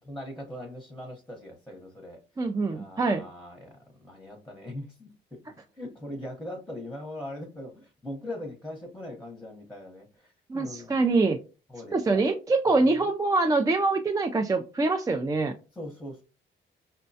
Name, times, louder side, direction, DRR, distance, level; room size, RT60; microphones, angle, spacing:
voice 1, 0.1-2.2 2.6-5.4 5.7-10.9 11.7-12.2 12.7-13.1 15.7-16.2, left 1 dB, 5° left, 0 dB, 0.8 m, -41 dB
voice 2, 2.4-3.2 10.5-11.4 11.9-15.5, right 3 dB, 20° right, 4 dB, 0.4 m, -24 dB
5.3 x 2.2 x 2.6 m, 0.33 s
cardioid pair, 90°, 20 cm